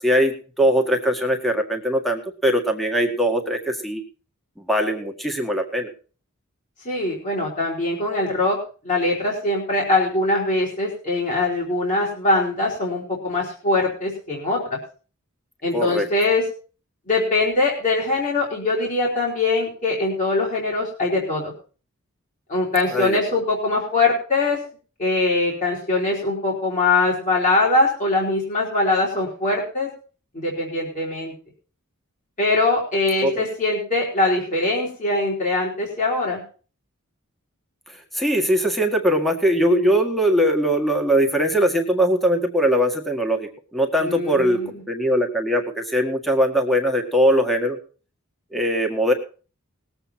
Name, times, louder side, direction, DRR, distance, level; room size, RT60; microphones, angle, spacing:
voice 1, 0.0-4.0 4.7-5.9 15.7-16.1 22.9-23.2 33.2-33.4 38.1-47.8 48.5-49.1, equal, ahead, 3 dB, 1.7 m, -21 dB
voice 2, 6.9-8.6 8.8-14.8 15.6-16.4 17.1-21.5 22.5-24.6 25.0-29.9 30.3-31.3 32.4-36.4 44.0-44.8, left 2 dB, 35° left, -3 dB, 3.5 m, -22 dB
20.0 x 8.0 x 4.3 m, 0.38 s
head